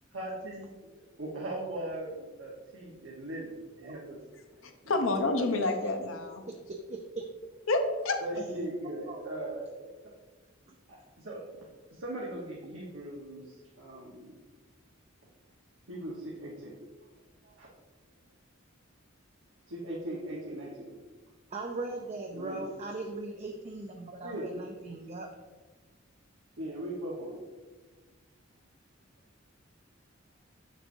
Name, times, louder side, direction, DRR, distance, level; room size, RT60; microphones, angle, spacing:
voice 1, 0.1-4.2 4.8-5.1 5.4-5.6 8.2-9.7 11.2-11.4 11.9-14.4 15.9-16.8 17.4-17.7 19.7-20.9 22.3-22.6 24.2-24.5 26.6-27.4, right 1 dB, 75° right, -5 dB, 1.2 m, -39 dB
voice 2, 4.9-6.4 7.7-8.2, left 2 dB, 85° left, 5 dB, 0.7 m, -28 dB
voice 3, 6.5-7.3 9.1-9.2 10.7-10.8 21.5-25.3, right 2 dB, 35° right, 2 dB, 0.5 m, -39 dB
6.5 x 6.0 x 2.7 m, 1.3 s
head